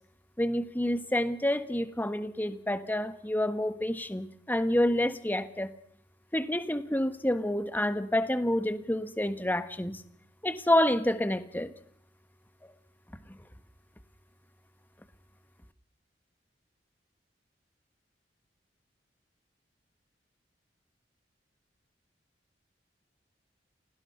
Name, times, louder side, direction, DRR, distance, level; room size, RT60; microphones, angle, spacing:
voice 1, 0.4-5.7 6.3-10.0 10.4-11.7, left 1 dB, 10° left, 11 dB, 1.3 m, -28 dB
28.5 x 18.5 x 5.7 m, 0.62 s
head